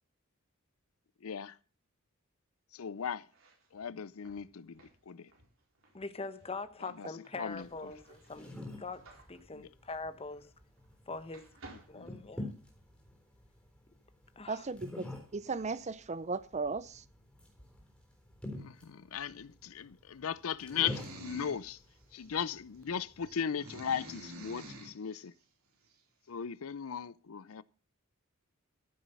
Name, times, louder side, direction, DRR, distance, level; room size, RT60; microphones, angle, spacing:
voice 1, 1.2-1.5 2.7-3.2 3.7-5.3 7.0-7.1 7.4-7.7 9.5-9.7 11.9-12.2 18.6-21.8 22.1-25.3 26.3-27.6, left 7 dB, 85° left, 0.6 m, -37 dB
sound 1, 3.2-11.0 11.3-12.9, right 3 dB, 70° right, 4.3 m, -59 dB
voice 2, 5.9-8.5 8.8-10.5 11.1-11.5 11.9-12.5 14.4-14.6, left 3 dB, 30° left, 1.0 m, -43 dB
sound 2, 7.5-23.3, left 1 dB, 5° left, 3.8 m, -48 dB
voice 3, 14.5-17.0, right 4 dB, 35° right, 0.6 m, -36 dB
sound 3, 20.8-21.6 22.2-22.3 23.2-25.0, right 1 dB, 85° right, 3.8 m, -47 dB
14.5 x 7.2 x 5.5 m
head